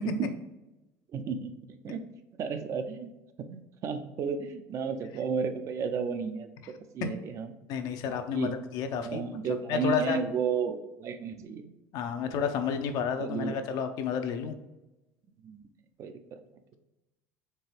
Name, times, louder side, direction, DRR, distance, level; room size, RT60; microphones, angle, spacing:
voice 1, 0.0-0.3 1.1-2.0 2.4-3.1 3.4-6.5 6.9-7.5 8.1-8.5 9.0-11.6 13.2-13.6 15.4-15.6 16.0-16.4, right 6 dB, 45° right, 8 dB, 0.5 m, -33 dB
voice 2, 7.7-9.2 9.7-10.2 11.9-14.5, left 7 dB, 60° left, 7 dB, 0.6 m, -31 dB
4.5 x 3.4 x 3.3 m, 0.98 s
supercardioid pair, 115°, 7 cm